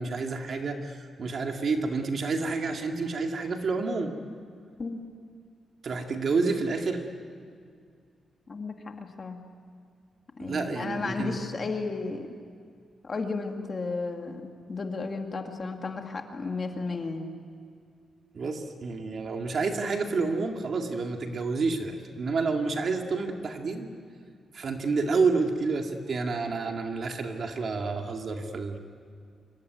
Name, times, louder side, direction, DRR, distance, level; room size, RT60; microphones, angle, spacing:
voice 1, 0.0-4.2 5.8-7.1 10.4-11.4 18.3-23.9 24.5-28.8, right 4 dB, 45° right, 3 dB, 2.2 m, -29 dB
voice 2, 8.5-9.4 10.4-12.3 13.0-17.3, left 3 dB, 30° left, 4 dB, 2.2 m, -33 dB
26.0 x 24.0 x 9.5 m, 2.2 s
wide cardioid pair, 170°, 0 cm